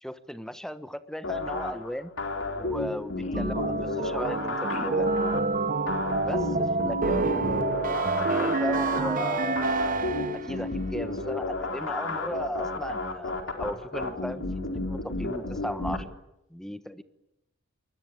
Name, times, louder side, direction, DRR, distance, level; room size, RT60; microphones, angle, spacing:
voice 1, 0.0-2.1 2.6-5.1 6.2-7.4 8.2-9.7 10.4-13.3 13.6-14.4 14.7-16.0 16.5-17.0, equal, 5° left, 11 dB, 1.2 m, -36 dB
sound 1, 1.2-16.0, left 2 dB, 70° left, 4.4 m, -32 dB
voice 2, 3.2-3.8 4.7-5.0 7.0-7.9 8.4-8.9 9.2-9.3, left 1 dB, 35° left, 6 dB, 2.5 m, -39 dB
sound 2, 3.3-10.6, right 4 dB, 40° right, 1.0 m, -28 dB
24.5 x 21.0 x 8.9 m, 0.88 s
head